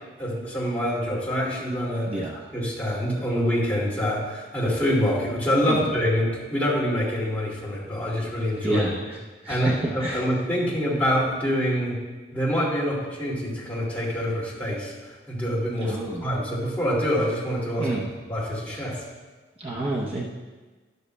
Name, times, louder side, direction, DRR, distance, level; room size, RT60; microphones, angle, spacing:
voice 1, 0.2-2.2 2.5-8.8 9.5-12.0 12.3-14.9 15.3-17.9 18.3-19.0, equal, 10° left, -6 dB, 2.2 m, -26 dB
voice 2, 8.6-10.3 15.8-16.3 17.8-18.1 18.7-18.8 19.6-20.2, right 1 dB, 30° right, -2 dB, 0.7 m, -29 dB
12.0 x 11.0 x 2.2 m, 1.3 s
head